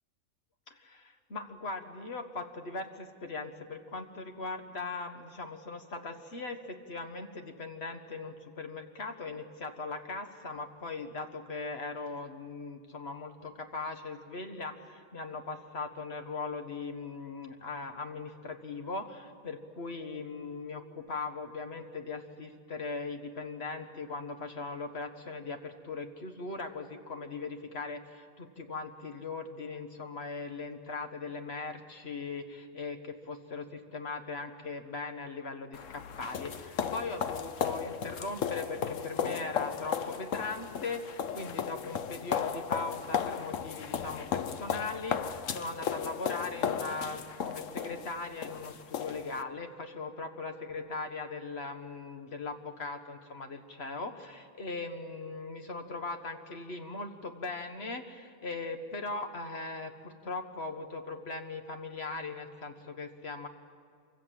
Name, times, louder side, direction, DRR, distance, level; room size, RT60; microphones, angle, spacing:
voice 1, 0.7-63.5, left 3 dB, 55° left, 7 dB, 1.9 m, -39 dB
sound 1, 35.7-49.4, left 7 dB, 80° left, 1.3 m, -35 dB
27.0 x 24.5 x 7.7 m, 2.1 s
omnidirectional pair, 1.3 m